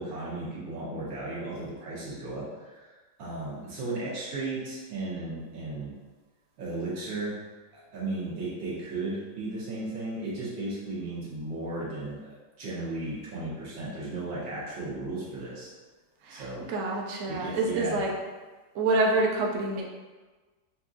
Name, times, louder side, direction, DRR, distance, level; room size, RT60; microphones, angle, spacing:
voice 1, 0.0-5.9 6.6-7.3 7.7-15.7 16.3-16.6 17.3-18.0, right 2 dB, 85° right, -7 dB, 2.0 m, -35 dB
voice 2, 16.2-18.1 18.7-19.8, right 2 dB, 60° right, -2 dB, 0.8 m, -27 dB
6.1 x 2.7 x 2.4 m, 1.3 s
omnidirectional pair, 2.0 m